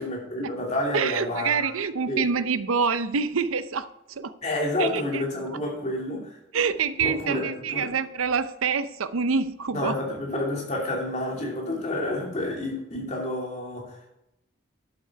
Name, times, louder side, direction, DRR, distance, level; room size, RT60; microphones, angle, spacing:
voice 1, 0.0-1.5 2.1-2.3 4.4-6.4 7.0-7.9 9.7-14.1, left 1 dB, 35° left, -1 dB, 2.8 m, -29 dB
voice 2, 0.9-4.3 4.8-5.2 6.5-10.0, right 5 dB, 85° right, 13 dB, 0.6 m, -26 dB
11.5 x 7.8 x 4.6 m, 0.88 s
head